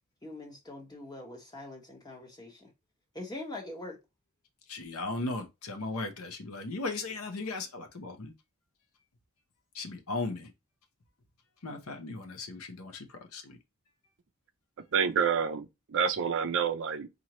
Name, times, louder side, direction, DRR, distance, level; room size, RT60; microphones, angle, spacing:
voice 1, 0.2-2.7 3.1-4.0, left 2 dB, 20° left, 1.2 m, -43 dB
voice 2, 4.7-8.3 9.7-10.5 11.6-13.1 13.3-13.6, left 3 dB, 70° left, 0.8 m, -37 dB
voice 3, 14.9-17.1, right 7 dB, 60° right, 0.5 m, -28 dB
4.4 x 2.6 x 3.0 m
head